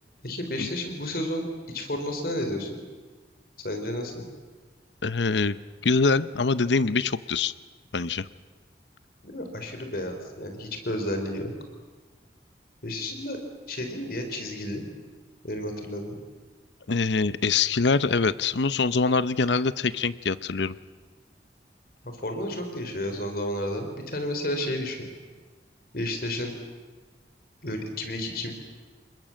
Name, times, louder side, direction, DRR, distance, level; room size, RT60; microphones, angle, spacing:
voice 1, 0.2-2.8 3.6-4.3 9.2-11.5 12.8-13.4 13.7-14.8 15.4-16.2 22.0-25.1 25.9-26.5 27.6-28.5, left 1 dB, 55° left, 5 dB, 3.8 m, -31 dB
voice 2, 5.0-5.6 5.8-7.5 7.9-8.3 16.9-20.8, left 4 dB, 85° left, 16 dB, 0.8 m, -24 dB
27.0 x 21.0 x 7.6 m, 1.4 s
head